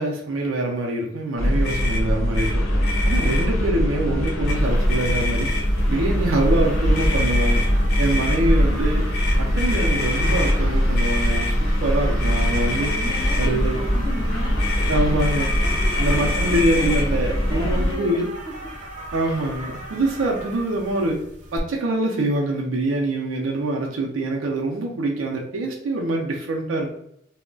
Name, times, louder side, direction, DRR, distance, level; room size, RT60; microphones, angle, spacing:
voice 1, 0.0-2.6 3.0-5.5 5.9-7.6 8.0-9.0 9.4-12.9 13.4-13.9 14.9-15.5 16.0-18.3 19.1-21.2 21.5-26.9, right 1 dB, 85° right, -1 dB, 0.5 m, -24 dB
sound 1, 1.4-17.9, equal, 90° left, 0.7 m, -22 dB
Motor vehicle (road), 1.6-2.0 2.3-2.5 2.8-3.5 4.2-4.6 4.9-5.8 6.9-8.4 9.1-10.6 11.0-11.5 12.2-13.5 14.6-17.1, left 3 dB, 50° left, 0.7 m, -28 dB
sound 2, 4.6-21.6, right 1 dB, 35° right, 0.5 m, -39 dB
voice 2, 8.2-8.6 12.6-18.7 19.2-19.6 20.2-20.7, left 2 dB, 20° left, 3 dB, 0.3 m, -36 dB
2.2 x 2.1 x 3.7 m, 0.73 s
head